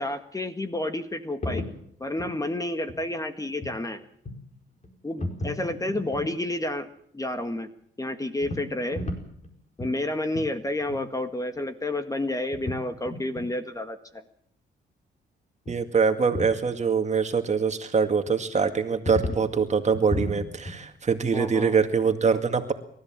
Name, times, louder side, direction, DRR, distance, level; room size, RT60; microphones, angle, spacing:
voice 1, 0.0-1.6 2.0-4.0 5.0-6.9 7.1-7.7 8.0-9.0 9.8-14.2 21.3-21.8, left 1 dB, 15° left, 8 dB, 1.8 m, -30 dB
sound 1, 1.4-1.8 2.2-2.3 2.9-3.0 3.5-3.8 4.2-4.5 4.8-4.9 5.2-6.3 8.4-9.5 9.8-10.0 10.3-10.5 10.8-11.0 11.3-11.4 11.5-11.6 12.5-12.8 13.0-13.5 15.6-15.8 16.1-16.6 18.3-18.4 19.1-19.4 19.9-20.8, left 1 dB, 35° left, 4.9 m, -33 dB
voice 2, 15.7-22.7, right 5 dB, 35° right, 6 dB, 2.1 m, -24 dB
29.0 x 13.5 x 7.5 m, 0.66 s
cardioid pair, 90°, 20 cm